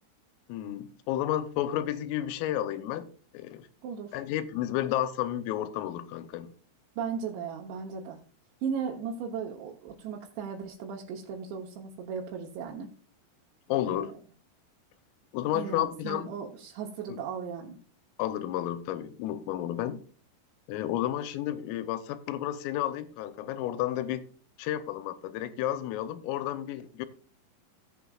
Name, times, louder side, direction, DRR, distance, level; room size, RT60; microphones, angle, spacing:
voice 1, 0.5-3.7 4.1-6.5 13.7-14.1 15.3-16.3 17.1-17.2 18.2-20.0 20.7-24.2 24.6-27.1, left 12 dB, 90° left, 3.5 m, -31 dB
voice 2, 3.8-4.2 7.0-8.2 8.6-12.9 13.8-14.1 15.5-17.8, right 6 dB, 75° right, 3.0 m, -36 dB
16.5 x 8.6 x 2.4 m
omnidirectional pair, 5.8 m